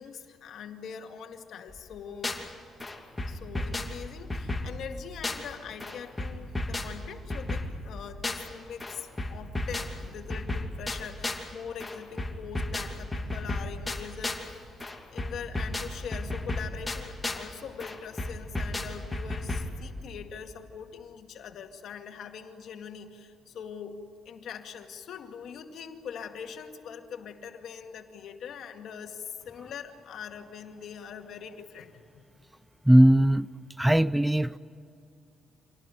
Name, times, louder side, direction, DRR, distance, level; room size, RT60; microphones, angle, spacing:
voice 1, 0.0-2.4 2.9-3.0 3.3-14.7 15.1-32.2, left 7 dB, 70° left, 5 dB, 2.2 m, -42 dB
sound 1, 1.7-2.5 2.8-5.5 5.8-8.5 8.8-11.5 11.8-14.5 14.8-17.5 17.8-19.7, left 2 dB, 15° left, 2.9 m, -34 dB
voice 2, 32.9-33.5 33.8-34.6, right 1 dB, 5° right, 17 dB, 0.5 m, -19 dB
26.5 x 18.5 x 9.4 m, 2.6 s
cardioid pair, 90°, 0 cm